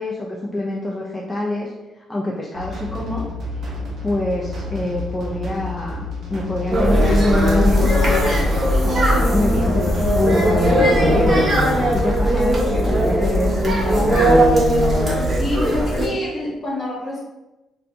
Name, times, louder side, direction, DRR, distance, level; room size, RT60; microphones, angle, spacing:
voice 1, 0.0-3.3 4.0-10.1 10.5-11.5 11.8-14.3, left 1 dB, 10° left, -4 dB, 0.4 m, -26 dB
sound 1, 2.5-12.0, left 3 dB, 60° right, 0.8 m, -31 dB
sound 2, 6.7-16.1, equal, 40° right, 1.1 m, -17 dB
voice 2, 15.3-17.2, left 1 dB, 35° left, -4 dB, 1.3 m, -27 dB
2.6 x 2.5 x 3.4 m, 1.0 s
cardioid pair, 90°, 0 cm